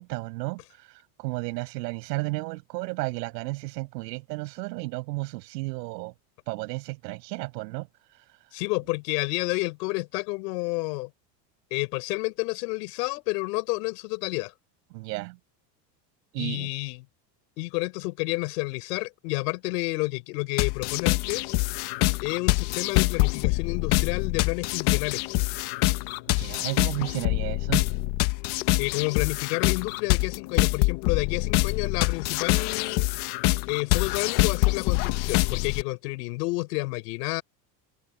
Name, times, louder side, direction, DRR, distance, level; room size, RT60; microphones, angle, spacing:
voice 1, 0.0-6.1 6.5-7.9 8.1-8.4 14.9-15.4 16.3-16.7 26.3-27.8, right 24 dB, 85° right, 6.0 m, -33 dB
voice 2, 8.5-11.1 11.7-14.5 16.4-17.0 17.6-21.5 22.2-25.2 28.8-33.1 33.7-37.4, left 25 dB, 80° left, 4.4 m, -30 dB
sound 1, 20.6-35.8, left 21 dB, 50° left, 1.1 m, -25 dB
cardioid pair, 175°, 47 cm